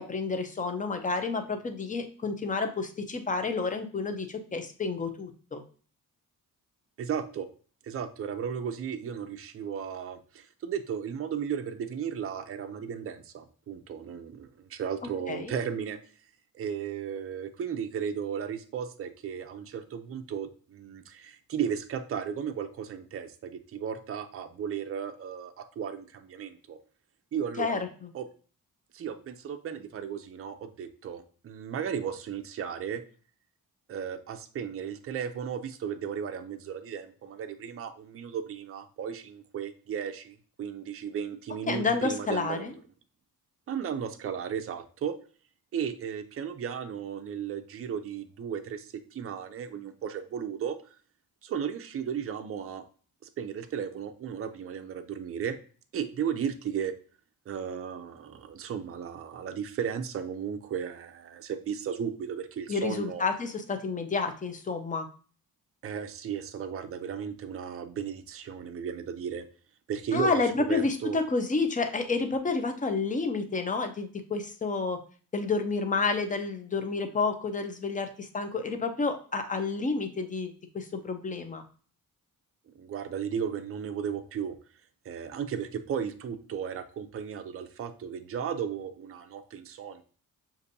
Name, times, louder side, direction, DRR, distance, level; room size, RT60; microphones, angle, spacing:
voice 1, 0.0-5.6 15.3-15.5 27.6-28.1 41.7-42.7 62.7-65.1 70.1-75.0 75.3-81.6, left 4 dB, 20° left, 7 dB, 0.5 m, -30 dB
voice 2, 7.0-7.5 7.8-16.0 16.5-26.8 27.3-27.8 28.1-28.3 28.9-33.0 33.9-42.6 43.7-45.1 45.7-50.8 51.4-52.8 53.2-55.6 55.9-56.9 57.5-63.2 65.8-69.4 69.9-70.4 70.7-71.2 82.7-84.6 85.0-90.0, right 8 dB, 40° right, 7 dB, 0.5 m, -35 dB
6.5 x 2.6 x 2.7 m, 0.41 s
wide cardioid pair, 135°, 35 cm